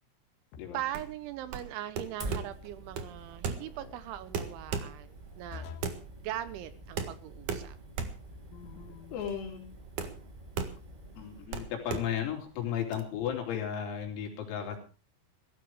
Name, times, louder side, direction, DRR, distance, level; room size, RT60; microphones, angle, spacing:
sound 1, 0.5-1.0 3.5-4.0 5.5-6.1 8.5-9.2, left 8 dB, 65° left, 3.5 m, -47 dB
voice 1, 0.7-5.7 6.2-7.8, right 12 dB, 75° right, 14 dB, 3.0 m, -40 dB
sound 2, 0.8-13.0, right 6 dB, 60° right, 2.1 m, -38 dB
Fire, 2.2-11.5, right 1 dB, 25° right, 1.0 m, -47 dB
voice 2, 9.1-9.6 11.2-14.8, left 9 dB, 85° left, 2 dB, 6.2 m, -34 dB
17.0 x 14.0 x 4.8 m, 0.34 s
omnidirectional pair, 6.0 m